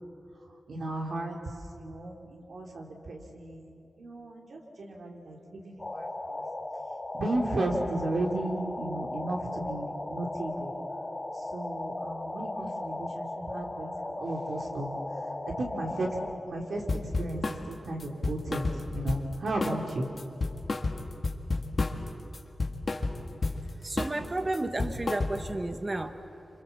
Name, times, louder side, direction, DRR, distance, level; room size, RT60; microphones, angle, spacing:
voice 1, 0.7-1.4 1.7-6.5 7.1-10.8 11.3-13.3 13.5-14.9 15.6-16.1 16.5-20.1, right 2 dB, 70° right, 0 dB, 3.5 m, -34 dB
sound 1, 5.8-16.3, left 2 dB, 25° left, 3.3 m, -37 dB
sound 2, 16.9-17.6 18.0-19.3 19.6-19.9 20.2-22.1 22.3-23.6 24.0-24.2 24.5-25.6, left 3 dB, 45° left, 1.9 m, -31 dB
voice 2, 23.5-26.2, right 2 dB, 25° right, 8 dB, 1.4 m, -32 dB
27.5 x 26.5 x 7.3 m, 2.6 s
wide cardioid pair, 100°, 0 cm